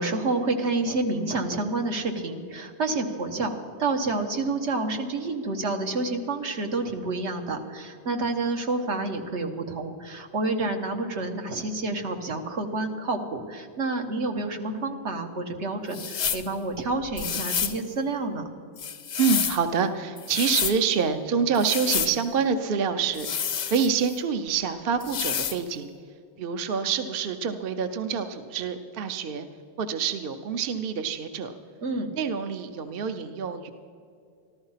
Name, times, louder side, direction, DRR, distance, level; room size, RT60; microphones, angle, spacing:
voice 1, 0.0-18.5 31.8-32.1, right 3 dB, 80° right, 4 dB, 1.5 m, -29 dB
sound 1, 15.9-16.5 17.2-17.8 18.8-19.6 20.2-20.8 21.6-22.2 23.1-24.2 25.0-25.6, left 8 dB, 75° left, 1.0 m, -29 dB
voice 2, 19.2-25.9 26.4-29.5 29.8-31.5 32.1-33.7, right 6 dB, 60° right, 8 dB, 0.8 m, -27 dB
14.0 x 13.0 x 5.6 m, 2.3 s
omnidirectional pair, 1.2 m